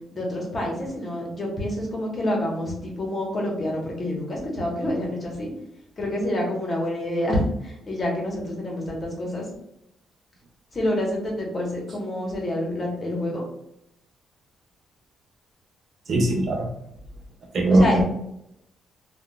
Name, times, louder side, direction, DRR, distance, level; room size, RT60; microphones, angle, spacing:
voice 1, 0.1-5.5 6.0-9.5 10.7-13.4 17.7-18.0, left 1 dB, 35° left, -1 dB, 1.1 m, -27 dB
voice 2, 16.1-16.7 17.5-18.0, right 1 dB, 50° right, 1 dB, 0.5 m, -19 dB
3.6 x 2.3 x 2.2 m, 0.79 s
cardioid pair, 90°, 0 cm